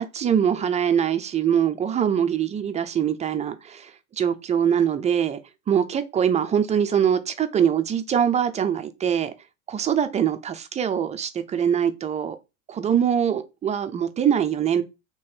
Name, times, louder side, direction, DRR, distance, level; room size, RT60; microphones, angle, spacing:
voice 1, 0.0-3.9 4.2-5.4 5.7-9.3 9.7-12.4 12.7-14.8, right 8 dB, 20° right, 0.3 m, -23 dB
3.0 x 2.9 x 4.4 m
supercardioid pair, 100°, 38 cm